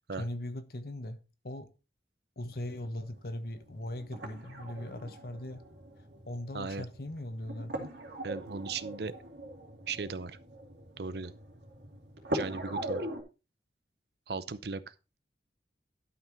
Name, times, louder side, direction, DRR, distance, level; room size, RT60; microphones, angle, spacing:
voice 1, 0.2-1.2 1.4-1.7 2.4-5.6 6.3-7.9, left 1 dB, 55° left, 1.2 m, -39 dB
sound 1, 2.5-13.2, right 1 dB, 85° right, 2.6 m, -42 dB
voice 2, 6.5-6.9 8.2-9.1 9.9-10.4 11.0-11.3 12.3-13.1 14.3-15.2, right 4 dB, 70° right, 0.7 m, -37 dB
12.0 x 5.8 x 4.4 m
head